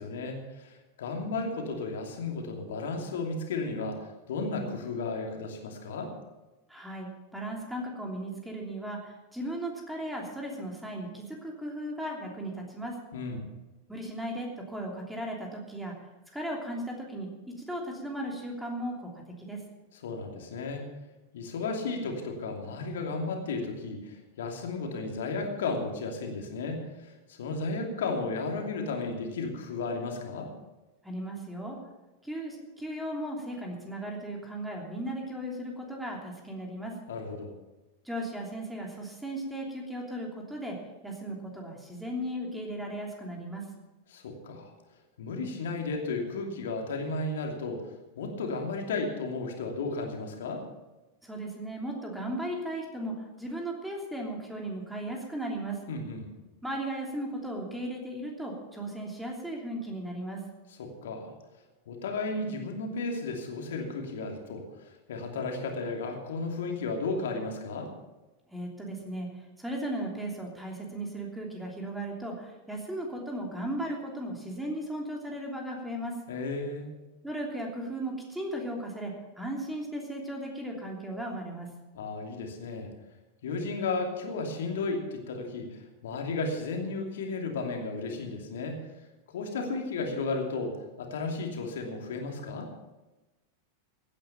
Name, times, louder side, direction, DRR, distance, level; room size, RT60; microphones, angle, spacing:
voice 1, 0.0-6.1 13.1-13.4 19.9-20.9 21.3-30.5 37.1-37.5 44.1-44.7 45.2-50.6 55.9-56.3 60.8-61.3 61.9-67.9 76.3-76.9 81.9-82.9 83.4-88.8 89.3-92.7, left 3 dB, 60° left, 2 dB, 2.7 m, -34 dB
voice 2, 6.7-12.9 13.9-17.3 17.6-19.6 31.0-31.8 32.2-36.9 38.0-40.8 41.0-43.6 51.2-55.8 56.6-60.4 68.5-76.1 77.2-81.7, right 1 dB, 5° right, 0 dB, 3.1 m, -36 dB
16.5 x 10.5 x 5.7 m, 1.1 s
figure-of-eight pair, 90°, 0 cm